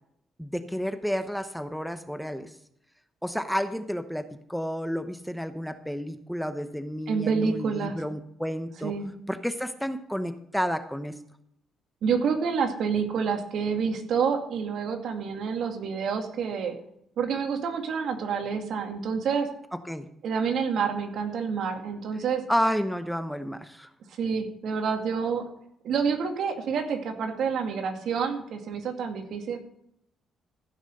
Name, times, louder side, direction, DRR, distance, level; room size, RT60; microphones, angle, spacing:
voice 1, 0.4-2.5 3.2-8.9 9.3-11.2 19.8-20.1 22.5-23.9, equal, ahead, 10 dB, 0.9 m, -31 dB
voice 2, 7.1-8.0 8.8-9.1 12.0-16.7 17.2-19.5 20.2-22.4 24.2-25.4 25.8-29.6, right 6 dB, 70° right, 5 dB, 2.3 m, -28 dB
15.0 x 6.1 x 6.6 m, 0.74 s
cardioid pair, 90°, 0 cm